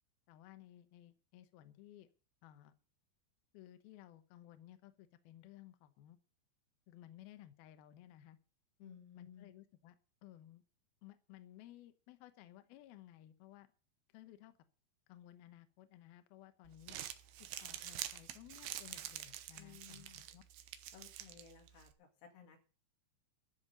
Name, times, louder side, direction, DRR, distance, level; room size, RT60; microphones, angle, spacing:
voice 1, 0.3-2.1 2.4-2.8 3.5-6.2 6.9-8.4 9.1-10.0 10.2-10.6 11.0-13.7 14.1-14.6 15.1-17.0 17.6-20.4, left 13 dB, 80° left, 10 dB, 2.1 m, -58 dB
voice 2, 8.8-9.5 19.6-20.3 20.9-22.6, left 7 dB, 60° left, 4 dB, 4.2 m, -57 dB
Crumpling crinkling, 16.7-21.9, right 12 dB, 85° right, 2.2 m, -47 dB
13.0 x 7.0 x 9.6 m, 0.37 s
omnidirectional pair, 5.9 m